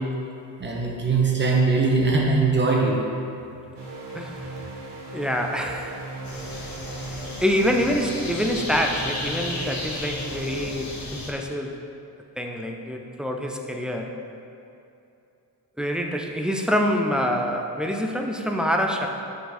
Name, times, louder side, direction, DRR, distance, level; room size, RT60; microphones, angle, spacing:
voice 1, 0.6-2.9, right 3 dB, 25° right, -2 dB, 1.1 m, -21 dB
sound 1, 3.7-10.6, right 2 dB, 85° right, 1.5 m, -37 dB
voice 2, 5.1-6.1 6.3-6.5 7.4-11.8 12.4-14.1 15.8-19.1, equal, ahead, 2 dB, 0.3 m, -26 dB
sound 2, 6.2-11.3, left 2 dB, 55° left, 1.3 m, -34 dB
6.5 x 4.6 x 4.1 m, 2.7 s
cardioid pair, 125°, 42 cm